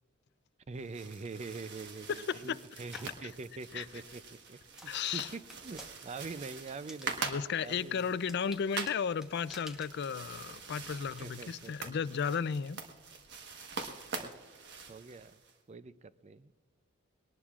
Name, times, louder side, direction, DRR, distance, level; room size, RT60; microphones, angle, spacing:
voice 1, 0.7-7.2 7.6-8.1 11.2-11.9 14.1-15.4 15.7-16.5, right 4 dB, 35° right, 0.4 m, -45 dB
sound 1, 0.7-15.6, right 4 dB, 55° right, 1.3 m, -44 dB
voice 2, 2.1-2.6 3.7-3.9 4.9-5.3 7.2-12.8, left 6 dB, 55° left, 0.4 m, -34 dB
sound 2, 2.9-3.2 3.8-11.2, left 1 dB, 5° right, 1.1 m, -54 dB
21.5 x 18.5 x 2.4 m
head